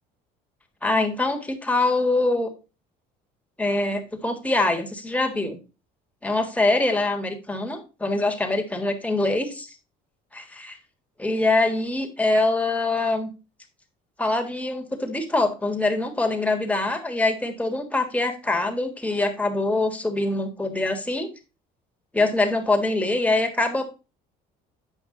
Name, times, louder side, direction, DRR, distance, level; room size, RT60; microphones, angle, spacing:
voice 1, 0.8-2.5 3.6-5.6 6.2-9.7 10.3-10.8 11.2-13.3 14.2-21.3 22.1-23.8, left 2 dB, 5° left, 4 dB, 1.6 m, -24 dB
8.2 x 5.3 x 3.8 m, 0.31 s
supercardioid pair, 85°, 19 cm